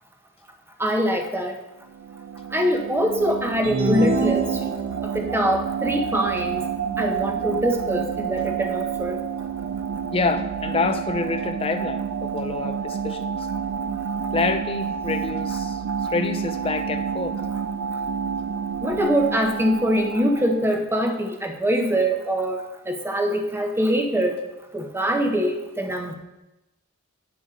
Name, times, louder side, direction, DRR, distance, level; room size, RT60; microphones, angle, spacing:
voice 1, 0.8-1.5 2.5-4.6 5.0-6.6 7.0-9.2 18.8-24.4 24.7-26.1, equal, 10° right, 3 dB, 0.9 m, -23 dB
sound 1, 1.9-20.8, right 7 dB, 75° right, 0.3 m, -29 dB
sound 2, 3.6-5.2, right 2 dB, 50° right, 1.0 m, -25 dB
voice 2, 10.1-13.5 14.3-17.4, left 3 dB, 25° left, 7 dB, 0.4 m, -27 dB
9.7 x 6.0 x 3.7 m, 0.98 s
head